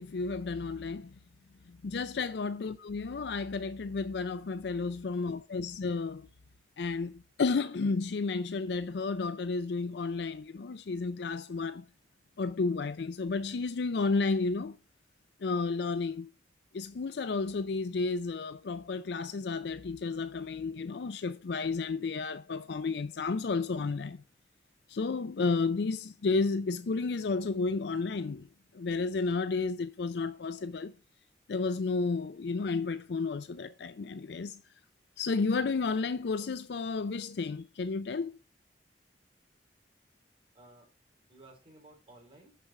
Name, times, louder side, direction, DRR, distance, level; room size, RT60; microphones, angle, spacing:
voice 1, 0.0-1.1 1.7-6.3 6.8-11.8 12.4-14.7 15.4-16.3 16.7-24.2 24.9-28.5 28.7-30.9 31.5-34.6 35.2-38.3, left 4 dB, 65° left, 0.4 m, -32 dB
voice 2, 40.5-40.9 41.3-42.6, right 2 dB, 30° right, 3.6 m, -57 dB
6.7 x 6.1 x 6.4 m
head